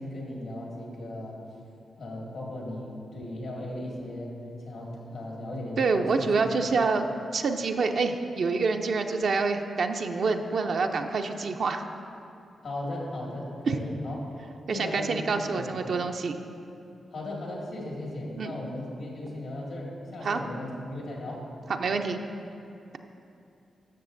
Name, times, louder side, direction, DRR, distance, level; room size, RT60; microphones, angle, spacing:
voice 1, 0.0-1.4 2.0-4.3 4.6-6.7 12.6-14.2 14.7-15.2 15.6-15.7 17.1-21.5, left 1 dB, 85° left, -3 dB, 1.9 m, -37 dB
voice 2, 5.8-7.1 7.3-11.8 13.7-13.8 14.7-16.4 18.4-18.6 20.2-20.4 21.7-22.2, right 4 dB, 70° right, 5 dB, 0.4 m, -27 dB
13.0 x 6.3 x 2.6 m, 2.7 s
supercardioid pair, 50°, 0 cm